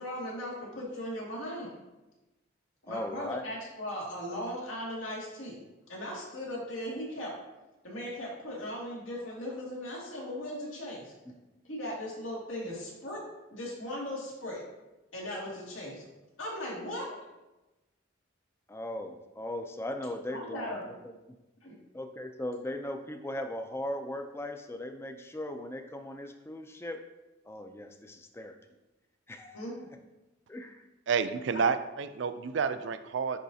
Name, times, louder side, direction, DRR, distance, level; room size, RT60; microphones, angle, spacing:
voice 1, 0.0-1.7 2.9-5.6 5.9-7.3 7.8-11.1 11.6-13.2 13.5-14.6 15.1-16.1 16.4-17.2 20.3-20.8 21.6-21.7 29.5-29.7 31.5-31.6, left 1 dB, 80° left, -4 dB, 2.1 m, -38 dB
voice 2, 2.9-3.4 11.3-11.4 18.7-21.1 21.9-27.0 27.5-28.6 29.3-29.6 30.5-30.8, left 1 dB, 15° left, 6 dB, 0.4 m, -38 dB
voice 3, 31.1-33.4, right 5 dB, 60° right, 11 dB, 0.4 m, -29 dB
10.0 x 4.1 x 2.7 m, 1.0 s
head